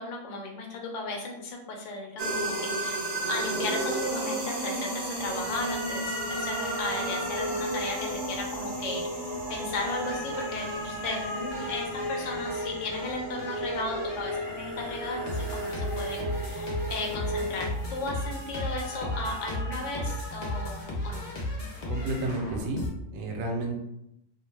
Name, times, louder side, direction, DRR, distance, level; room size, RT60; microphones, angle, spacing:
voice 1, 0.0-21.3, left 2 dB, 70° left, 0 dB, 1.0 m, -35 dB
sound 1, 2.2-20.8, right 1 dB, 35° right, 0.4 m, -35 dB
sound 2, 5.1-17.6, equal, 65° right, 0.8 m, -36 dB
sound 3, 9.7-22.9, left 1 dB, 45° left, 0.6 m, -36 dB
voice 2, 21.9-22.8 23.1-23.8, right 2 dB, 90° right, 2 dB, 1.0 m, -31 dB
2.5 x 2.1 x 3.2 m, 0.82 s
omnidirectional pair, 1.4 m